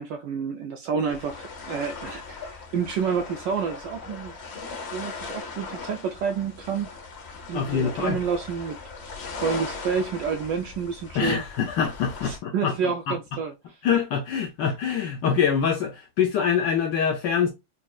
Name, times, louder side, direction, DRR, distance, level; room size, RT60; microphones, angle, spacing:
voice 1, 0.0-4.4 4.9-6.9 7.5-8.8 9.4-11.4 12.2-13.5, right 6 dB, 80° right, 1.0 m, -29 dB
sound 1, 1.1-12.4, left 4 dB, 60° left, 0.6 m, -39 dB
voice 2, 7.5-8.2 11.1-13.2 13.8-17.5, left 7 dB, 75° left, 1.0 m, -25 dB
5.2 x 2.7 x 2.3 m
omnidirectional pair, 2.4 m